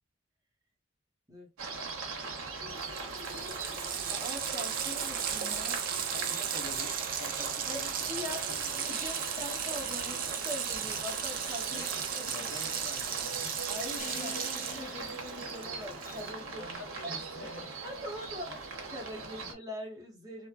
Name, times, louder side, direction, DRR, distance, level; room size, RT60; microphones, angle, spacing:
sound 1, 1.6-19.5, right 4 dB, 80° right, 0.8 m, -41 dB
Water tap faucet, 2.4-2.5 2.7-16.5, right 8 dB, 45° right, 0.4 m, -36 dB
voice 1, 4.0-5.8 7.6-8.5 8.7-12.9 13.7-16.7 17.0-17.5 17.8-18.6 18.9-20.5, left 1 dB, 15° right, 0.8 m, -43 dB
voice 2, 6.0-8.8 10.8-10.9 11.7-13.6 16.6-17.8 18.5-18.6, left 3 dB, 65° left, 1.0 m, -48 dB
sound 2, 14.0-16.3, left 3 dB, 40° left, 0.4 m, -46 dB
3.0 x 2.1 x 2.4 m
head